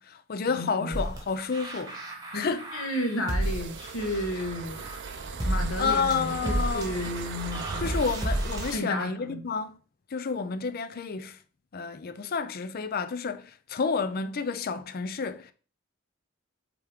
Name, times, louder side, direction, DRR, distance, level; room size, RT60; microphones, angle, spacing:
voice 1, 0.0-2.0 2.3-2.7 5.8-7.1 7.8-9.8 10.1-11.4 11.7-15.5, left 5 dB, 45° left, 0.5 m, -30 dB
voice 2, 0.5-1.0 2.3-4.8 5.5-8.0 8.7-9.4, left 1 dB, 70° left, 1.4 m, -33 dB
sound 1, 0.9-8.8, right 1 dB, 15° right, 1.1 m, -32 dB
sound 2, 3.4-8.8, right 4 dB, 55° right, 0.6 m, -37 dB
7.8 x 3.5 x 3.6 m
head